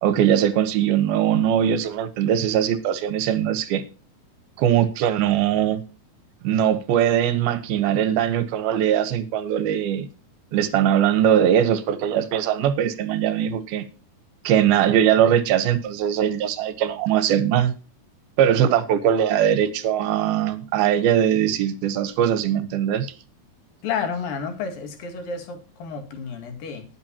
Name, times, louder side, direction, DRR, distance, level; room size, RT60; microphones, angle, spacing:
voice 1, 0.0-3.8 4.6-5.8 6.4-10.1 10.5-13.9 14.4-17.7 18.4-23.1, right 10 dB, 80° right, 2.9 m, -21 dB
voice 2, 23.8-26.9, left 6 dB, 70° left, 3.7 m, -31 dB
20.0 x 8.1 x 2.9 m
omnidirectional pair, 4.3 m